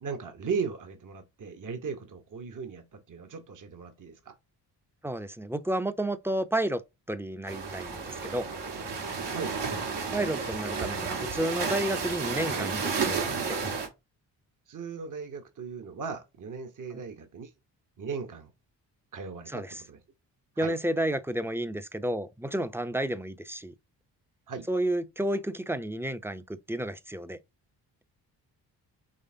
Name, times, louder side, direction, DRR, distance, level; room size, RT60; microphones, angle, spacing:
voice 1, 0.0-4.3 9.3-9.6 14.7-17.5 18.0-18.5 19.1-20.0 20.6-20.7 24.5-24.7, right 5 dB, 45° right, 1.1 m, -37 dB
voice 2, 5.0-6.8 7.1-8.5 10.1-13.6 19.5-19.7 20.6-23.7 24.7-27.4, right 1 dB, 5° right, 0.6 m, -31 dB
sound 1, 7.5-13.9, right 5 dB, 70° right, 1.7 m, -32 dB
5.5 x 3.3 x 2.7 m
supercardioid pair, 45°, 43 cm